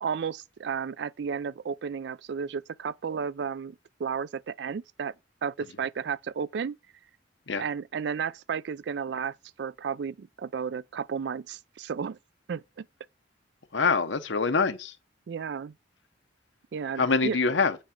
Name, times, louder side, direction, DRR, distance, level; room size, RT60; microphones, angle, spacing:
voice 1, 0.0-5.1 5.4-6.8 7.6-12.2 12.5-12.9 15.3-15.7 16.7-17.4, right 6 dB, 65° right, 0.4 m, -33 dB
voice 2, 13.7-14.9 17.0-17.8, left 4 dB, 75° left, 1.0 m, -25 dB
8.6 x 5.2 x 5.1 m
head